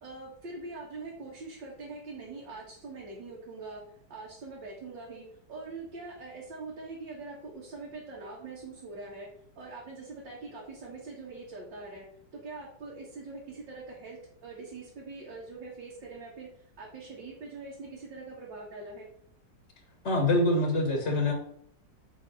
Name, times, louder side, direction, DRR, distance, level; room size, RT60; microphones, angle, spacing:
voice 1, 0.0-5.2 5.5-9.3 9.6-12.1 12.3-19.1, right 3 dB, 85° right, -4 dB, 2.6 m, -43 dB
voice 2, 20.0-21.3, left 2 dB, 40° left, 1 dB, 1.8 m, -25 dB
7.9 x 5.5 x 5.6 m, 0.67 s
omnidirectional pair, 1.9 m